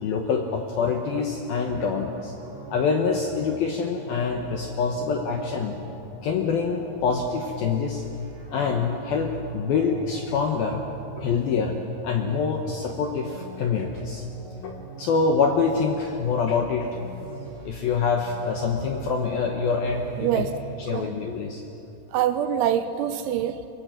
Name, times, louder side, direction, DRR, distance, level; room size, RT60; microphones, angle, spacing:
voice 1, 0.0-2.3 2.7-5.8 6.2-8.0 8.5-10.8 11.2-11.8 12.0-14.3 14.6-17.0 17.7-20.5 20.9-21.6, left 5 dB, 75° left, 3 dB, 2.3 m, -25 dB
sound 1, 1.6-20.8, right 3 dB, 45° right, 4.9 m, -43 dB
voice 2, 20.2-20.6 20.9-21.2 22.1-23.7, right 10 dB, 80° right, 10 dB, 3.0 m, -25 dB
24.0 x 23.0 x 7.6 m, 2.9 s
omnidirectional pair, 5.8 m